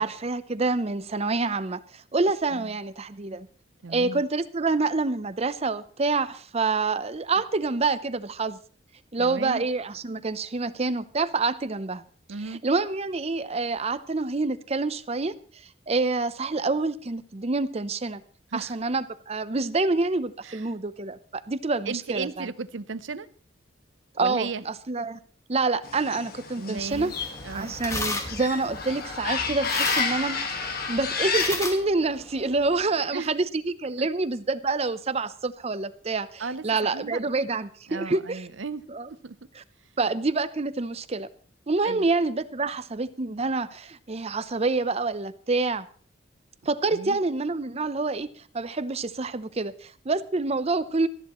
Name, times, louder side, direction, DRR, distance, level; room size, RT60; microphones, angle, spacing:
voice 1, 0.0-3.5 3.9-8.6 9.1-12.0 12.6-15.3 15.9-18.2 18.5-22.5 24.2-25.2 25.5-27.1 27.5-38.4 38.9-39.1 39.6-39.7 40.0-41.3 41.7-45.9 46.6-48.3 48.5-51.1, right 3 dB, 35° right, 14 dB, 0.7 m, -27 dB
voice 2, 3.8-4.2 9.2-9.7 12.3-12.6 18.5-18.8 20.4-20.7 21.9-23.3 24.2-24.6 26.6-27.1 27.4-27.8 33.1-33.3 34.0-34.1 36.4-37.2 37.9-38.8 39.1-39.4 41.8-42.1 42.6-42.7 46.9-47.2, right 4 dB, 75° right, 14 dB, 0.7 m, -35 dB
sound 1, 25.8-31.6, left 5 dB, 50° left, 1.7 m, -30 dB
sound 2, 26.8-32.8, left 2 dB, 15° left, 1.4 m, -36 dB
18.5 x 14.0 x 3.1 m, 0.43 s
head